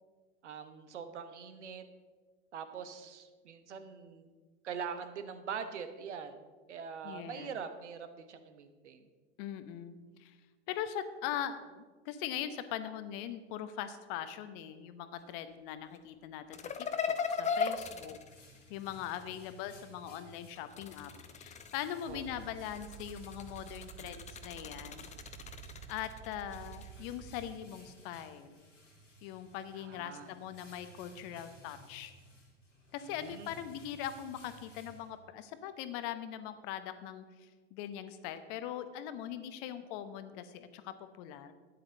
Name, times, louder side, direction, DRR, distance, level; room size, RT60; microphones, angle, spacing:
voice 1, 0.4-1.8 2.5-4.3 4.6-6.4 6.7-9.1 22.1-22.2 29.8-30.3 33.2-33.5, right 6 dB, 70° right, 9 dB, 1.1 m, -43 dB
voice 2, 7.0-7.5 9.4-10.4 10.7-18.2 18.7-21.1 21.4-25.1 25.9-28.7 29.2-32.1 32.9-41.6, left 10 dB, 50° left, 11 dB, 1.1 m, -41 dB
sound 1, 16.5-19.3 20.6-22.1 22.6-26.9, left 5 dB, 20° left, 0.8 m, -38 dB
sound 2, 17.7-35.5, equal, 90° left, 2.3 m, -58 dB
sound 3, 22.1-27.6, right 12 dB, 25° right, 0.8 m, -51 dB
12.0 x 9.8 x 4.0 m, 1.4 s
figure-of-eight pair, 80°, 36 cm